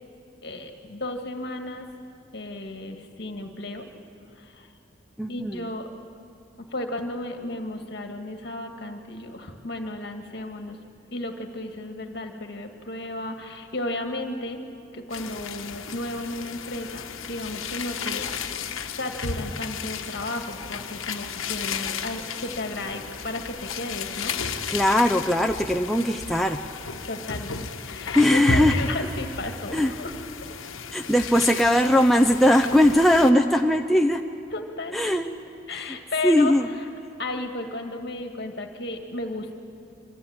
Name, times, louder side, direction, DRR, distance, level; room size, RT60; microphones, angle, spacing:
voice 1, 0.4-1.9 2.3-3.9 4.4-4.7 5.3-5.9 6.6-10.8 11.1-14.6 14.9-18.3 19.0-25.0 27.1-30.2 34.5-35.2 35.7-36.6 37.2-39.6, left 2 dB, 55° left, 4 dB, 1.8 m, -34 dB
voice 2, 5.2-5.6 24.7-26.6 28.1-28.8 29.7-29.9 30.9-34.2 34.9-35.3 35.7-36.0 36.2-36.7, left 1 dB, ahead, 2 dB, 0.5 m, -20 dB
sound 1, 15.1-33.3, left 5 dB, 90° left, 1.0 m, -33 dB
25.0 x 14.0 x 8.8 m, 2.5 s
head